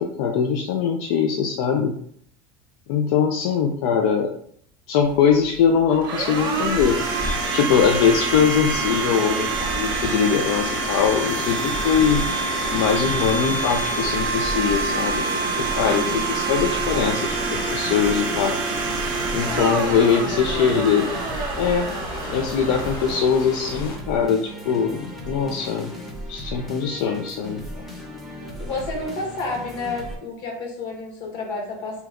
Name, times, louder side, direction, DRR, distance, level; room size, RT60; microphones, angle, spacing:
voice 1, 0.0-2.0 2.9-4.3 4.9-12.2 12.7-15.2 15.6-18.6 19.3-21.1 21.6-21.9 22.3-25.9 26.3-27.8, left 7 dB, 85° left, 2 dB, 0.4 m, -22 dB
Domestic sounds home sounds, 5.0-23.9, right 4 dB, 45° right, 0.6 m, -27 dB
sound 1, 6.3-24.0, left 1 dB, 35° left, 0.7 m, -35 dB
sound 2, 11.3-30.2, equal, ahead, 0.5 m, -37 dB
voice 2, 15.8-16.2 19.4-20.1 28.6-32.0, left 3 dB, 60° left, 0 dB, 1.0 m, -31 dB
2.9 x 2.1 x 3.5 m, 0.64 s
cardioid pair, 160°, 11 cm